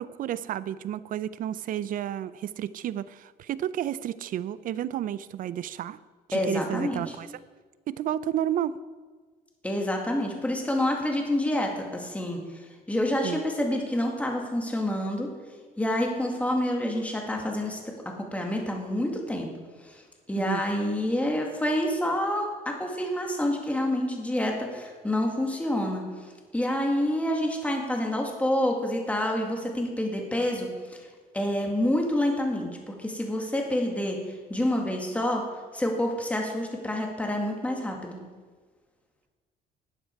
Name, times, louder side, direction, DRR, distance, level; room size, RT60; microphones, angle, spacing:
voice 1, 0.0-6.0 6.3-7.3 7.9-8.7 13.2-13.4 20.4-20.6, right 11 dB, 55° right, 17 dB, 0.5 m, -31 dB
voice 2, 6.3-7.0 9.6-15.3 15.8-17.9 18.3-19.5 19.8-20.0 20.3-31.0 31.3-32.7 33.0-34.2 34.5-35.4 35.7-38.2, left 1 dB, 10° left, 1 dB, 2.1 m, -28 dB
12.0 x 8.9 x 4.6 m, 1.4 s
cardioid pair, 110°, 17 cm